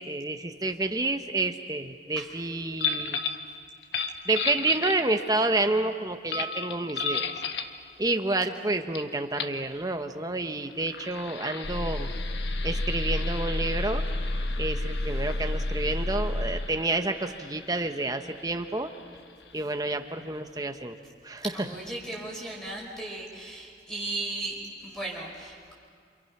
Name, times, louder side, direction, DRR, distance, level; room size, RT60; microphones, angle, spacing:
voice 1, 0.0-3.2 4.2-7.3 8.0-12.1 12.6-14.1 14.6-18.9 19.5-21.0 21.2-21.4, right 2 dB, 20° right, 6 dB, 1.1 m, -29 dB
sound 1, 2.8-3.4 3.8-5.4 6.3-7.8 8.9-9.0 9.3-9.6 10.7-19.9, left 6 dB, 75° left, 1.3 m, -36 dB
sound 2, 11.6-16.9, left 1 dB, 60° left, 0.7 m, -30 dB
voice 2, 21.4-25.7, right 2 dB, 5° left, -2 dB, 5.0 m, -36 dB
28.5 x 27.0 x 6.0 m, 2.2 s
head